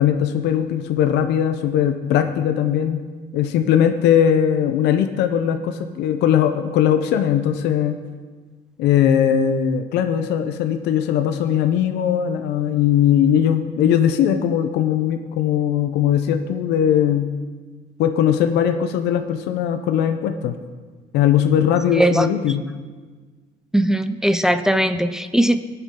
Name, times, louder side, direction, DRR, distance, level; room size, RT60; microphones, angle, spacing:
voice 1, 0.0-3.0 3.3-8.0 8.8-17.3 18.0-20.6 21.1-22.6, left 9 dB, 85° left, 7 dB, 0.7 m, -19 dB
voice 2, 21.9-22.3 23.7-25.6, right 1 dB, 5° right, 9 dB, 0.5 m, -19 dB
20.5 x 7.2 x 3.8 m, 1.5 s
cardioid pair, 110°, 17 cm